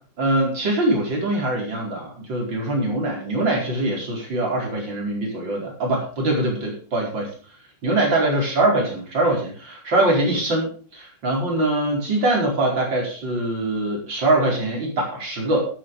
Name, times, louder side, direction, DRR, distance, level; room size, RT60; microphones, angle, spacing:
voice 1, 0.2-7.3 7.8-15.7, right 2 dB, 80° right, -1 dB, 5.4 m, -23 dB
12.5 x 9.7 x 5.4 m, 0.41 s
omnidirectional pair, 2.0 m